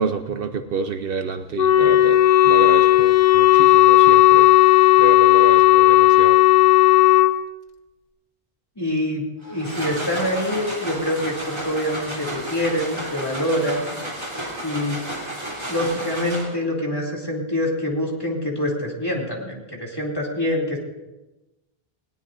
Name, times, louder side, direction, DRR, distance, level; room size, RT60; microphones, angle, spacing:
voice 1, 0.0-4.6 5.0-6.4, right 5 dB, 65° right, 8 dB, 0.9 m, -28 dB
Wind instrument woodwind instrument, 1.6-7.3, left 14 dB, 45° left, 0.8 m, -14 dB
voice 2, 8.8-14.0 14.6-15.0 15.7-20.8, left 1 dB, 20° left, -2 dB, 2.8 m, -25 dB
sound 1, 9.4-16.8, right 1 dB, 25° right, 3.3 m, -32 dB
20.0 x 18.0 x 2.6 m, 1.0 s
omnidirectional pair, 1.0 m